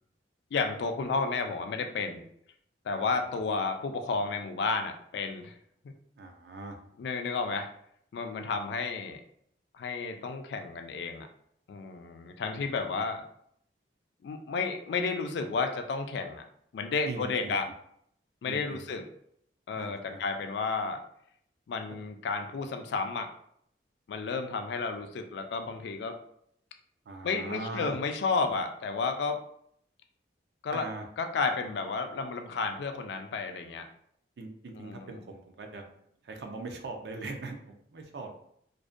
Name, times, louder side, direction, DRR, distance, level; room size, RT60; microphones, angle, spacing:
voice 1, 0.5-2.2 2.8-5.5 5.8-5.9 7.0-7.7 8.1-9.2 9.7-11.3 11.7-13.2 14.2-16.4 16.7-17.7 18.4-19.0 19.7-21.0 21.7-23.3 24.1-26.2 27.2-29.4 30.6-30.9 31.2-33.9 34.8-35.1, left 4 dB, 70° left, 6 dB, 0.3 m, -32 dB
voice 2, 2.9-3.3 6.2-6.8 12.5-13.0 17.1-17.6 18.5-18.9 19.8-20.2 27.1-28.0 30.7-31.1 34.4-35.8 36.2-38.3, right 3 dB, 65° right, 4 dB, 0.4 m, -41 dB
2.5 x 2.1 x 2.4 m, 0.69 s
head